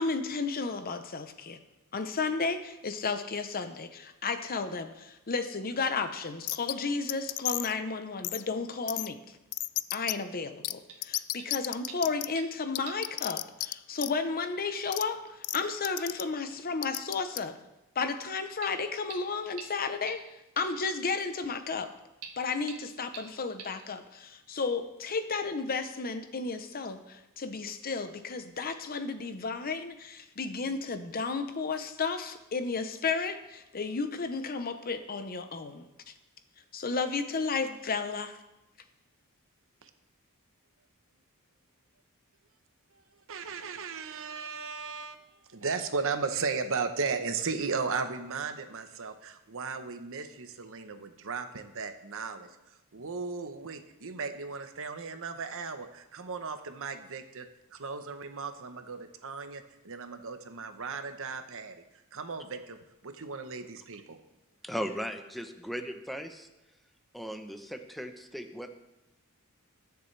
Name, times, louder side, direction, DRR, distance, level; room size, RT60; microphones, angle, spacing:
voice 1, 0.0-1.6 1.9-9.2 9.9-17.5 18.0-20.2 20.6-21.9 22.4-36.1 36.7-38.4, left 4 dB, 40° left, 9 dB, 0.8 m, -33 dB
sound 1, 6.5-6.7 7.1-7.7 8.2-8.4 8.9-9.1 9.5-10.1 10.6-10.7 11.0-12.3 12.7-13.7 14.0-14.1 14.9-15.0 15.4-15.6 15.8-16.2 16.8-17.4, left 18 dB, 70° left, 0.3 m, -32 dB
sound 2, 10.9-11.1 11.4-11.6 11.9-12.6 12.9-13.1 13.4-13.5 14.6-14.7 15.1-15.2 15.5-15.6 16.0-16.1 16.5-16.6 16.9-17.1 18.6-18.7 19.1-19.2 19.6-19.7 20.1-20.2 20.6-20.7 22.2-22.3 22.7-22.8 23.1-23.2 23.6-23.7, right 6 dB, 85° right, 1.6 m, -45 dB
voice 2, 43.3-52.5 52.9-61.8 62.1-64.2, right 5 dB, 65° right, 8 dB, 1.0 m, -36 dB
voice 3, 64.6-66.5 67.1-68.7, equal, ahead, 6 dB, 0.8 m, -37 dB
21.0 x 7.0 x 3.3 m, 0.95 s
head